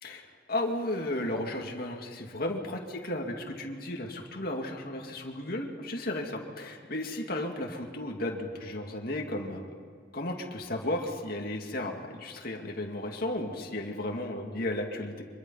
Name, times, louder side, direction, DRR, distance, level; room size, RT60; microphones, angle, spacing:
voice 1, 0.0-9.7 10.1-15.2, left 1 dB, 50° left, 1 dB, 2.3 m, -34 dB
25.0 x 22.5 x 5.6 m, 2.1 s
head